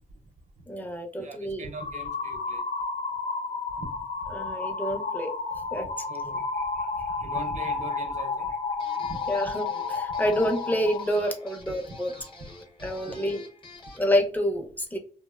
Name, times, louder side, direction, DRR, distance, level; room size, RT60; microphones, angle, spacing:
voice 1, 0.7-1.6 4.3-5.3 5.7-5.8 9.3-12.1 12.8-13.4 14.0-15.0, equal, 10° left, 0.6 m, -28 dB
voice 2, 1.2-2.6 3.8-3.9 5.6-5.7 6.1-8.8 9.1-9.2 12.4-12.5 13.0-13.3, right 3 dB, 60° right, 0.6 m, -42 dB
sound 1, 1.7-11.1, left 4 dB, 70° left, 0.5 m, -32 dB
sound 2, 8.8-14.1, left 2 dB, 40° left, 0.9 m, -48 dB
2.6 x 2.0 x 2.3 m
cardioid pair, 80°, 14 cm